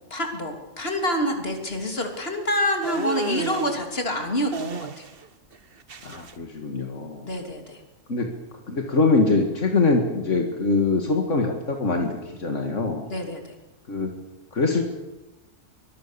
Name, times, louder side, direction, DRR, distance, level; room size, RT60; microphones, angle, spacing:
voice 1, 0.1-5.1 7.2-7.8 13.1-13.4, left 1 dB, 55° left, 4 dB, 3.7 m, -27 dB
sound 1, 2.8-3.8 4.5-5.3 5.5-6.3, right 5 dB, 50° right, 1.3 m, -32 dB
voice 2, 6.0-7.3 8.1-8.3 8.7-13.1 13.9-14.1 14.5-14.9, left 3 dB, 80° left, 3 dB, 2.5 m, -23 dB
24.0 x 21.5 x 7.0 m, 1.0 s
omnidirectional pair, 1.2 m